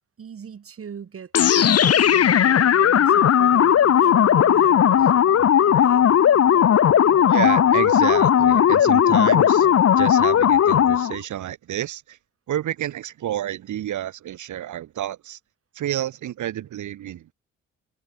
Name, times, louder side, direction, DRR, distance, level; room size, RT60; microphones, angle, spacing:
voice 1, 0.2-5.1 5.7-6.1, right 7 dB, 50° right, 7.8 m, -41 dB
sound 1, 1.3-11.2, left 9 dB, 55° left, 1.6 m, -16 dB
voice 2, 7.3-9.7 9.9-12.2 12.5-15.4 15.7-17.3, right 12 dB, 75° right, 7.7 m, -29 dB
cardioid pair, 90°, 30 cm